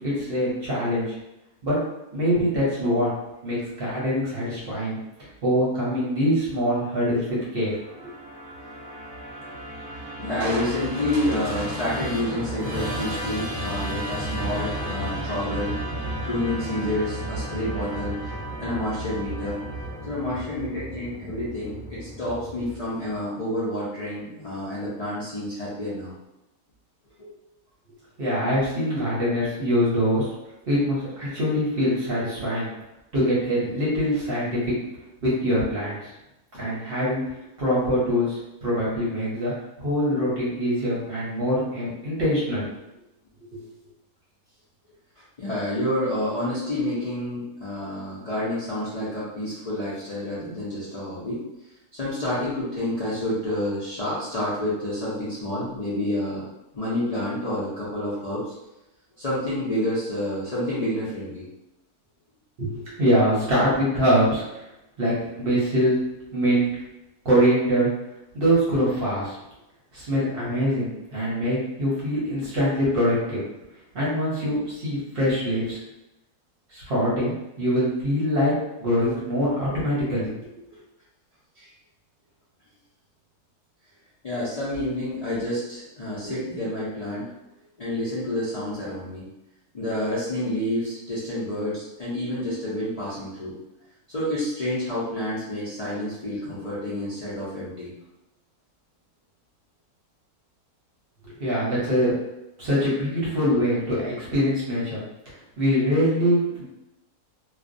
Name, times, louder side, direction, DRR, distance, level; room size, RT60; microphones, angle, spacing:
voice 1, 0.0-1.2 1.6-1.8 2.1-3.1 3.4-5.0 5.4-7.7 28.2-30.2 30.7-32.7 33.1-34.7 35.2-36.1 36.6-37.2 37.6-39.5 39.8-42.7 43.5-43.6 62.6-64.6 65.0-66.0 66.3-66.7 67.2-67.9 68.3-69.4 69.9-73.4 73.9-75.8 76.7-78.5 78.8-80.6 101.2-102.1 102.6-105.0 105.6-106.6, equal, 50° right, -7 dB, 0.8 m, -23 dB
Musical instrument, 7.7-23.0, equal, 10° left, 1.0 m, -33 dB
voice 2, 10.2-15.8 16.2-19.6 20.1-26.1 27.2-27.3 43.6-43.7 45.4-51.4 52.0-56.4 56.7-58.5 59.2-61.4 79.1-79.2 81.6-81.7 84.2-87.3 87.8-89.2 89.7-93.5 94.1-97.9, left 1 dB, 65° left, -9 dB, 0.3 m, -29 dB
Crushing, 10.4-13.8 14.2-14.3, right 1 dB, 75° right, 1.0 m, -38 dB
2.4 x 2.1 x 2.5 m, 0.93 s
omnidirectional pair, 1.6 m